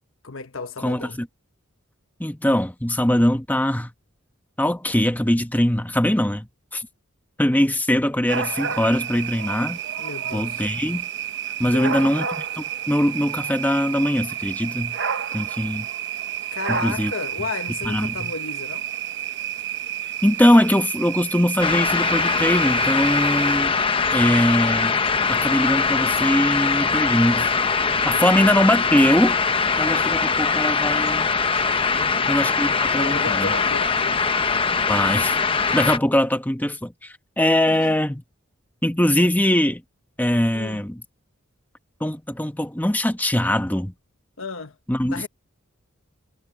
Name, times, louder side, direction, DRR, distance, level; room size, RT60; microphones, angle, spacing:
voice 1, 0.2-1.2 10.0-10.7 11.6-12.1 16.5-18.9 28.1-28.3 31.9-32.3 32.9-34.2 37.7-38.0 40.5-40.9 44.4-44.8 45.1-45.3, left 4 dB, 70° left, 1.3 m, -33 dB
voice 2, 0.8-1.3 2.2-3.9 4.6-6.9 7.4-9.8 10.3-11.1 11.6-12.3 12.6-15.0 15.3-15.9 16.7-17.1 17.8-18.3 20.2-23.8 24.1-25.0 25.3-27.5 28.0-29.4 29.8-31.3 32.3-33.5 34.9-35.3 35.7-38.2 38.8-39.8 40.2-41.0 42.0-43.9 44.9-45.3, left 1 dB, 10° left, 1.1 m, -21 dB
night dogs medina marrakesh, 8.3-23.6, right 9 dB, 55° right, 1.1 m, -30 dB
sound 1, 21.6-36.0, left 5 dB, 25° left, 0.9 m, -22 dB
head